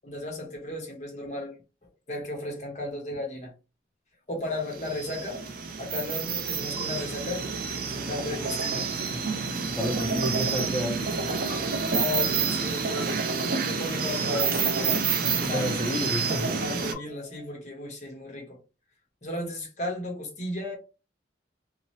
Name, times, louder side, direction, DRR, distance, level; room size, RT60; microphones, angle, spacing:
voice 1, 0.0-1.6 2.1-3.5 4.3-5.4 5.8-7.5 7.9-8.9 11.9-13.2 13.7-14.9 15.5-15.8 16.6-18.6 19.2-20.8, left 2 dB, 40° left, 1.0 m, -34 dB
sound 1, 2.9-3.2 4.9-5.2 6.6-6.8 8.4-8.7 9.8-10.3 11.1-11.6 12.6-13.0 14.0-14.4 15.4-16.0 16.7-17.6, left 3 dB, 60° left, 1.4 m, -46 dB
sound 2, 4.7-16.9, right 5 dB, 50° right, 0.5 m, -28 dB
voice 2, 9.8-11.1 15.3-16.6, left 1 dB, 5° left, 0.5 m, -30 dB
2.8 x 2.0 x 2.7 m
head